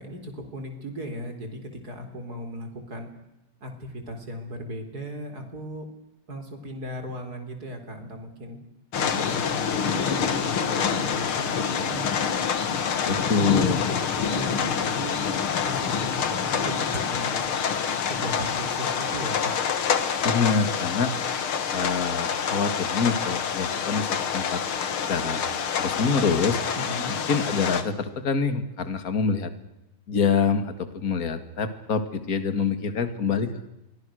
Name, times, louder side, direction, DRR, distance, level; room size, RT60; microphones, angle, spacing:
voice 1, 0.0-3.1 3.6-5.9 6.3-8.6 9.0-12.1 13.2-15.3 15.6-17.4 18.1-19.5 26.8-27.2, equal, 45° right, 6 dB, 4.5 m, -37 dB
sound 1, 8.9-27.8, left 7 dB, 90° left, 2.5 m, -27 dB
voice 2, 13.1-13.8 20.2-21.1 21.7-24.6 25.1-25.4 25.8-26.6 27.3-29.5 30.1-33.7, left 5 dB, 45° left, 10 dB, 2.4 m, -26 dB
29.5 x 23.5 x 6.5 m, 0.92 s
omnidirectional pair, 2.3 m